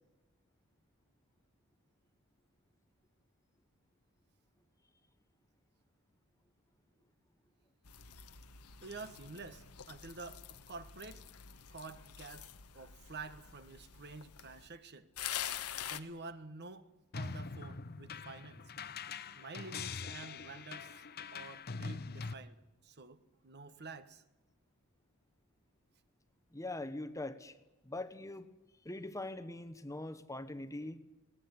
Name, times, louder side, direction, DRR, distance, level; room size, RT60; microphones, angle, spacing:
sound 1, 7.8-14.7 15.2-16.0, left 10 dB, 80° left, 1.3 m, -46 dB
voice 1, 8.8-11.2 11.7-15.1 15.8-18.6 19.3-21.0 21.3-24.2, right 3 dB, 50° right, 11 dB, 1.4 m, -49 dB
sound 2, 17.1-22.3, left 4 dB, 45° left, 0.9 m, -43 dB
voice 2, 26.5-27.6 27.8-28.5 28.8-31.0, left 2 dB, 15° left, 11 dB, 1.1 m, -42 dB
21.0 x 19.0 x 9.8 m, 1.1 s
head